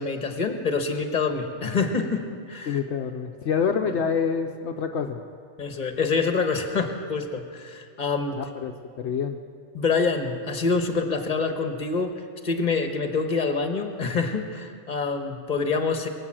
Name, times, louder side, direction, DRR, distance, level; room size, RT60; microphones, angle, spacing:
voice 1, 0.0-2.8 5.6-8.4 9.7-16.1, left 4 dB, 40° left, 6 dB, 1.3 m, -26 dB
voice 2, 2.7-5.2 8.4-9.4, left 6 dB, 70° left, 4 dB, 1.0 m, -27 dB
22.5 x 7.7 x 7.5 m, 2.2 s
omnidirectional pair, 1.2 m